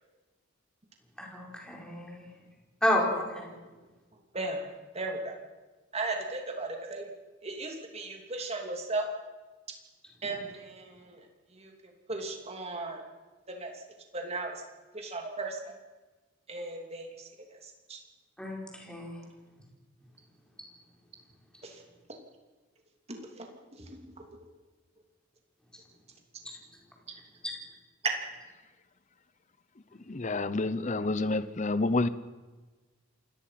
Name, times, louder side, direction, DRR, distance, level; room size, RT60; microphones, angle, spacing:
voice 1, 1.2-2.3 2.8-3.4 18.4-19.2 27.4-27.5, left 1 dB, 5° left, -2 dB, 4.4 m, -30 dB
voice 2, 4.9-5.3 5.9-7.1 7.4-9.1 10.2-11.3 11.5-11.7 12.1-13.0 13.5-13.8 14.1-14.6 14.9-15.7 16.5-17.3 17.6-18.0 21.6-21.8 23.1-24.3, right 2 dB, 30° right, 2 dB, 3.0 m, -37 dB
voice 3, 30.1-32.1, left 2 dB, 35° left, 14 dB, 0.8 m, -28 dB
27.5 x 18.0 x 5.9 m, 1.3 s
head